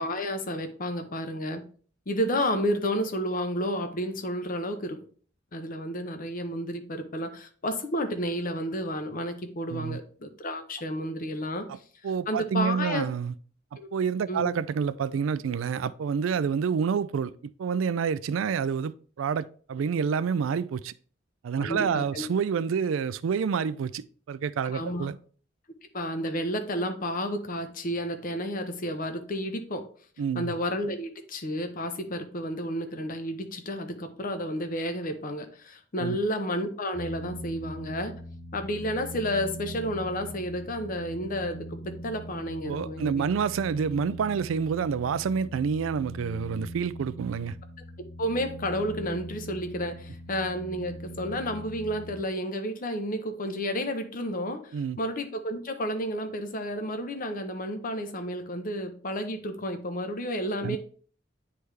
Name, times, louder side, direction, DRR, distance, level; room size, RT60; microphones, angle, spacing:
voice 1, 0.0-1.6 2.1-5.0 5.5-11.7 12.3-13.1 13.8-13.9 14.3-14.5 21.6-22.2 24.6-25.1 25.9-29.8 30.3-38.1 38.5-43.3 48.0-60.8, equal, 45° left, 0.8 m, -31 dB
voice 2, 9.7-10.0 11.7-11.8 12.0-13.3 13.7-17.3 17.6-18.9 19.2-20.9 21.4-25.2 30.2-30.5 36.0-36.2 42.7-47.6 54.7-55.0 60.6-60.8, right 6 dB, 90° right, 0.4 m, -28 dB
sound 1, 36.9-52.2, right 1 dB, 75° left, 2.2 m, -41 dB
9.4 x 3.4 x 3.2 m
head